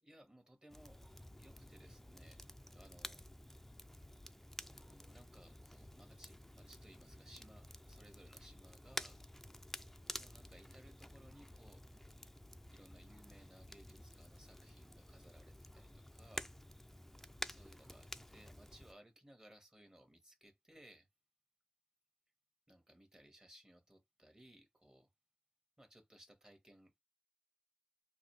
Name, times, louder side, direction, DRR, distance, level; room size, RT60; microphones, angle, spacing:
voice 1, 0.0-2.4 2.7-3.2 4.4-4.5 4.8-9.2 10.2-12.2 12.7-16.5 17.4-21.1 22.7-25.1 25.8-27.0, right 1 dB, 25° right, 1.4 m, -62 dB
Crackle, 0.7-18.9, left 1 dB, 10° left, 0.4 m, -51 dB
3.9 x 2.7 x 3.1 m
wide cardioid pair, 70°, 3 cm